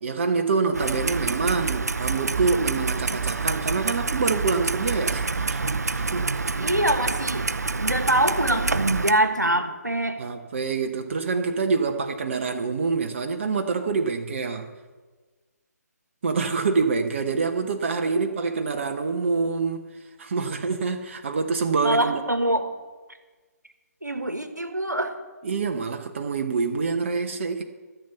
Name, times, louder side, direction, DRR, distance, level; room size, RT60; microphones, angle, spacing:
voice 1, 0.0-6.7 10.2-14.7 16.2-19.9 20.2-22.2 25.4-27.6, right 4 dB, 45° right, 1.0 m, -26 dB
Clock, 0.7-9.1, right 4 dB, 70° right, 0.7 m, -27 dB
voice 2, 6.6-10.2 21.8-22.7 24.0-25.2, right 1 dB, 85° right, 1.5 m, -24 dB
13.5 x 7.1 x 8.2 m
figure-of-eight pair, 140°, 9 cm